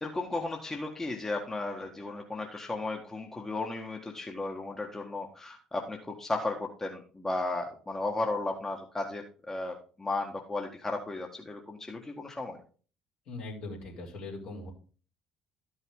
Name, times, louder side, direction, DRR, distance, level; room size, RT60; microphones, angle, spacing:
voice 1, 0.0-12.6, left 2 dB, 15° left, 2 dB, 1.5 m, -35 dB
voice 2, 13.3-14.7, left 2 dB, 60° left, -1 dB, 3.2 m, -40 dB
12.0 x 5.6 x 3.7 m, 0.39 s
figure-of-eight pair, 55°, 3 cm